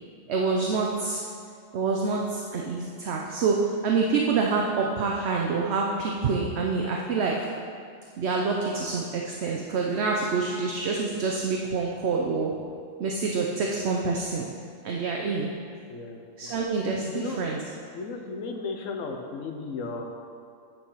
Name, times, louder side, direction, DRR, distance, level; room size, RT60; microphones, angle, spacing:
voice 1, 0.3-1.2 1.7-3.6 3.8-7.3 8.2-12.5 13.0-14.5 14.8-15.5 16.4-17.6, right 4 dB, 60° right, -1 dB, 0.9 m, -27 dB
voice 2, 15.9-16.5 17.0-17.4 17.9-20.0, left 4 dB, 90° left, 3 dB, 1.2 m, -35 dB
9.1 x 4.6 x 5.6 m, 2.3 s
omnidirectional pair, 1.3 m